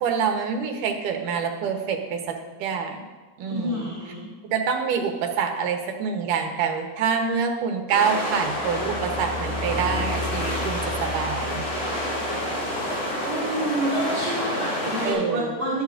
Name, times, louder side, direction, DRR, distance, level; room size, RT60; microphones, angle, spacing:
voice 1, 0.0-3.0 3.4-3.8 4.5-11.6 15.0-15.6, right 6 dB, 80° right, 4 dB, 2.5 m, -26 dB
voice 2, 3.4-4.3 13.2-15.8, right 1 dB, 30° right, -9 dB, 4.1 m, -28 dB
sound 1, 7.9-15.1, equal, 70° left, 4.8 m, -28 dB
sound 2, 8.3-13.0, left 1 dB, 5° right, 3.0 m, -35 dB
12.0 x 12.0 x 2.5 m, 1.3 s
omnidirectional pair, 3.7 m